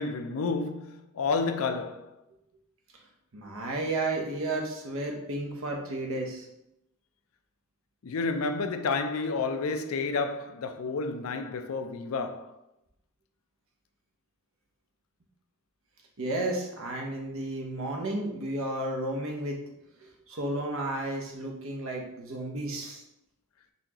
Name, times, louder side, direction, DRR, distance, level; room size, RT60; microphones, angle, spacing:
voice 1, 0.0-2.2 8.0-12.5, left 4 dB, 80° left, 0.4 m, -30 dB
voice 2, 3.3-6.5 16.2-19.6 20.0-23.0, right 2 dB, 70° right, 0.9 m, -32 dB
4.2 x 3.7 x 2.9 m
head